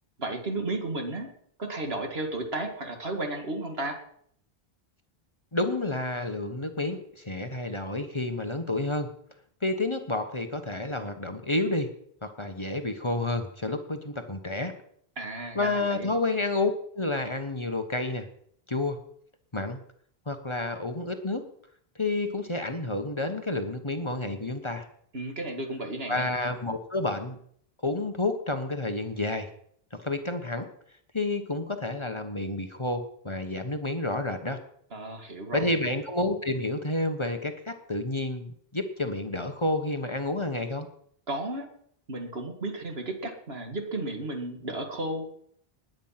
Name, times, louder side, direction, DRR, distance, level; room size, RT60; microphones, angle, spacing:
voice 1, 0.2-1.3 1.6-4.0 15.2-16.2 25.1-26.3 34.9-35.8 41.3-41.7 42.1-45.3, right 2 dB, 70° right, 4 dB, 2.5 m, -33 dB
voice 2, 5.5-9.1 9.6-11.9 12.2-14.7 15.5-18.3 18.7-19.0 19.5-19.8 20.3-21.4 22.0-24.9 26.1-27.4 27.8-29.5 30.0-30.7 31.1-34.6 35.5-40.9, left 2 dB, 30° left, 6 dB, 1.3 m, -30 dB
20.0 x 9.3 x 5.9 m, 0.65 s
omnidirectional pair, 1.1 m